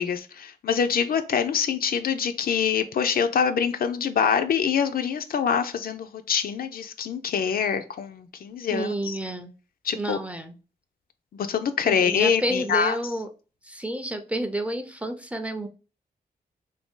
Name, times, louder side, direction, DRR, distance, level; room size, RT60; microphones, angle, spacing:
voice 1, 0.0-9.2 9.8-10.2 11.3-13.0, left 7 dB, 65° left, 0.4 m, -25 dB
voice 2, 8.7-9.5 9.9-10.5 11.8-13.3 13.6-15.7, right 1 dB, 10° right, 0.4 m, -30 dB
2.6 x 2.6 x 3.6 m
cardioid pair, 85°, 16 cm